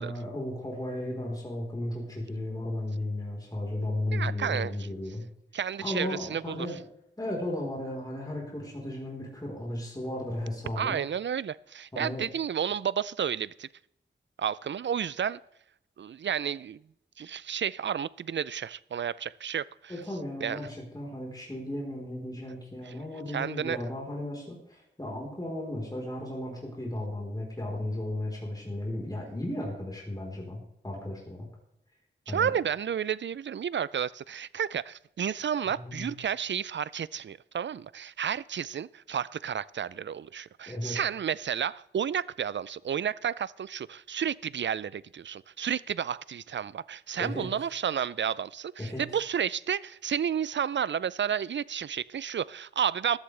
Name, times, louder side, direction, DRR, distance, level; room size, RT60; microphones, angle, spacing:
voice 1, 0.0-5.2 5.8-6.8 7.2-11.0 11.9-12.3 19.9-30.6 30.8-31.5 32.3-32.5 35.7-36.1 40.7-41.0 47.2-47.5 48.8-49.1, left 1 dB, 20° left, 4.0 m, -35 dB
voice 2, 4.1-4.7 5.5-6.6 10.8-13.7 14.4-15.4 16.0-16.8 17.2-19.9 20.4-20.6 23.3-23.8 32.3-53.2, right 8 dB, 75° right, 0.4 m, -31 dB
14.5 x 13.0 x 3.3 m
wide cardioid pair, 65°, 19 cm